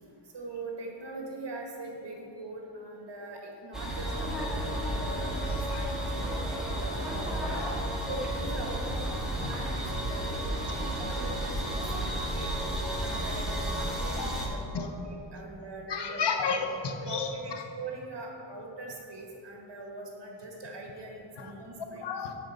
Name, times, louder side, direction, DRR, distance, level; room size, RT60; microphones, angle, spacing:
voice 1, 0.3-7.6 8.1-12.5 13.0-14.9 15.3-16.5 17.0-22.1, right 2 dB, 65° right, 0 dB, 1.7 m, -42 dB
sound 1, 3.7-14.5, right 1 dB, ahead, 1.5 m, -32 dB
voice 2, 11.8-12.3 14.2-14.3 14.7-14.9 15.9-17.6 21.4-21.5 22.0-22.3, left 5 dB, 65° left, 5 dB, 0.9 m, -33 dB
7.8 x 5.2 x 6.4 m, 2.7 s
wide cardioid pair, 115°, 45 cm